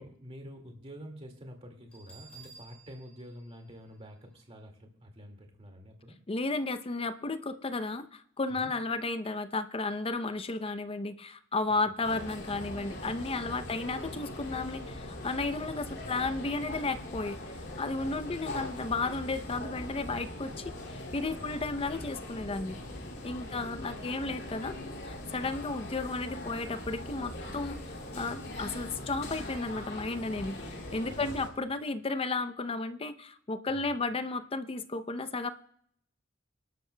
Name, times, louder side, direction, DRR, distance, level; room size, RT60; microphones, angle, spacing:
voice 1, 0.0-6.2 8.5-8.7 13.6-13.7 15.6-15.7 16.0-16.2 21.3-21.5 23.5-24.1 28.3-28.5 31.1-31.5 33.7-34.0, equal, 30° right, 3 dB, 2.1 m, -49 dB
Bell, 1.9-4.6, right 4 dB, 5° left, 5.5 m, -55 dB
voice 2, 6.3-17.4 17.8-22.8 23.2-24.8 25.0-35.5, left 3 dB, 30° left, 11 dB, 0.6 m, -33 dB
sound 1, 12.0-31.5, left 1 dB, 55° left, 2.6 m, -41 dB
25.5 x 12.0 x 2.2 m, 0.68 s
head